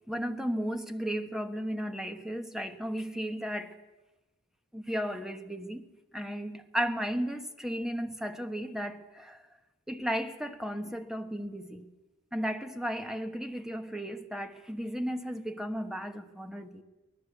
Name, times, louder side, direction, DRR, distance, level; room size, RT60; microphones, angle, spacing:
voice 1, 0.1-3.8 4.7-5.9 6.1-9.4 9.9-11.9 12.3-16.8, equal, ahead, 1.2 m, -34 dB
24.0 x 19.0 x 8.1 m
head